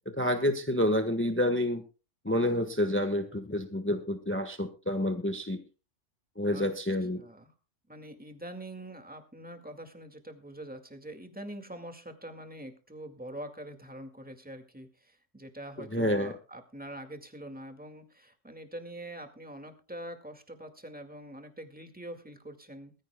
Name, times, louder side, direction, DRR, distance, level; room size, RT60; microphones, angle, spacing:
voice 1, 0.1-1.8 2.2-5.6 6.4-7.2 15.9-16.3, left 1 dB, 10° left, 7 dB, 1.3 m, -28 dB
voice 2, 7.1-7.5 7.9-22.9, right 1 dB, 5° right, 6 dB, 1.9 m, -44 dB
22.0 x 14.5 x 2.2 m, 0.32 s
omnidirectional pair, 1.3 m